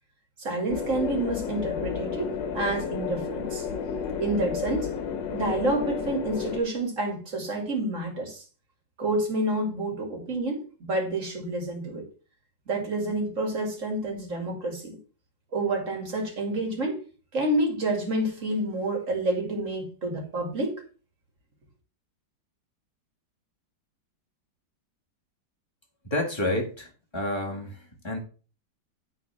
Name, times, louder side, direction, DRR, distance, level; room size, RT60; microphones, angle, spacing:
voice 1, 0.4-3.6 4.2-4.9 5.3-8.4 9.0-12.1 12.7-15.0 15.5-17.0 17.3-20.7, right 2 dB, 40° right, 2.8 m, -28 dB
sound 1, 0.7-6.6, left 7 dB, 75° left, 1.7 m, -32 dB
voice 2, 26.0-28.2, left 1 dB, 15° left, 2.0 m, -30 dB
9.7 x 4.4 x 5.7 m
omnidirectional pair, 2.0 m